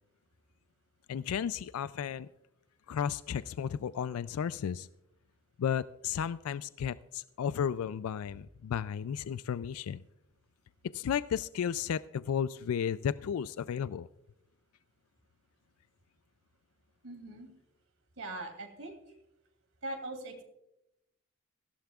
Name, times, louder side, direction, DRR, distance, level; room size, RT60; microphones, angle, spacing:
voice 1, 1.1-2.3 2.9-4.9 5.6-10.0 10.9-14.1, left 8 dB, 85° left, 16 dB, 0.3 m, -33 dB
voice 2, 17.0-17.5 18.2-18.9 19.8-20.4, right 2 dB, 75° right, 4 dB, 2.8 m, -41 dB
18.0 x 15.5 x 2.4 m, 0.85 s
head